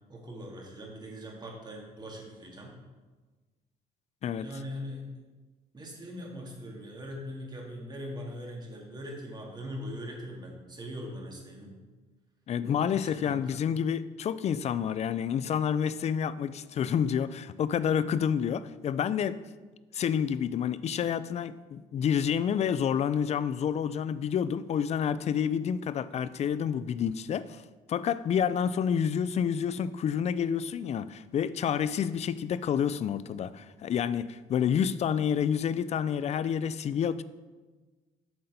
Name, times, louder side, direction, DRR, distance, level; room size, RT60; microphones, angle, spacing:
voice 1, 0.1-2.7 4.4-5.0 5.7-11.7 12.6-13.6, equal, 25° right, 0 dB, 2.0 m, -41 dB
voice 2, 12.5-19.4 19.9-27.6 27.9-37.2, left 8 dB, 40° left, 15 dB, 0.4 m, -29 dB
7.7 x 4.2 x 6.7 m, 1.3 s
cardioid pair, 110°, 17 cm